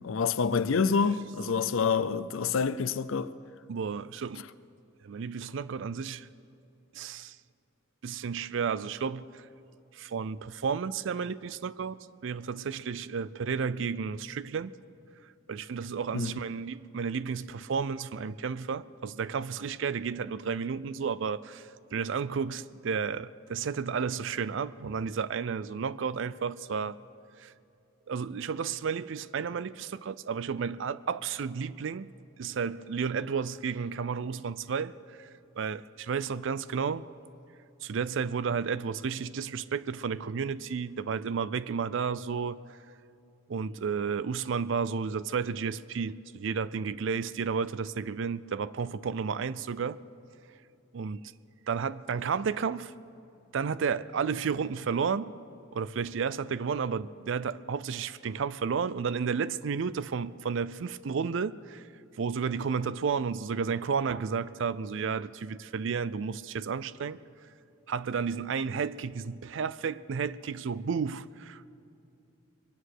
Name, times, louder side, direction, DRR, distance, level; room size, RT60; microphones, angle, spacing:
voice 1, 0.0-3.3 16.1-16.3, left 5 dB, 75° left, 0.5 m, -27 dB
voice 2, 3.7-4.5 5.0-6.3 6.9-7.4 8.0-9.5 9.9-14.7 15.5-27.0 27.4-27.5 28.1-32.1 32.4-35.3 35.6-37.1 37.8-42.6 43.5-50.0 50.9-51.3 51.7-52.9 53.5-55.3 55.7-61.8 62.2-67.2 67.9-71.7, right 6 dB, 65° right, 0.4 m, -32 dB
22.5 x 9.8 x 6.4 m
head